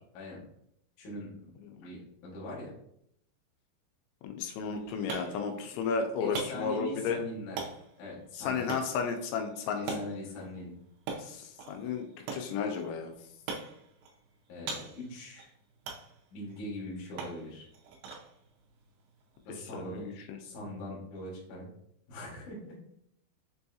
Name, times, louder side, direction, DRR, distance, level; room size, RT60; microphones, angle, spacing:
voice 1, 1.0-1.3 1.8-2.7 6.2-7.7 8.0-8.7 9.8-10.7 14.5-15.5 16.3-17.7 19.5-20.1 20.4-21.7 22.1-22.8, left 1 dB, 65° left, -5 dB, 2.0 m, -41 dB
voice 2, 4.2-7.2 8.4-10.0 11.2-13.1 19.7-20.1, left 5 dB, 85° left, 4 dB, 2.8 m, -33 dB
sound 1, 4.5-20.1, right 4 dB, 90° right, 3.0 m, -44 dB
6.9 x 2.7 x 2.3 m, 0.73 s
omnidirectional pair, 5.3 m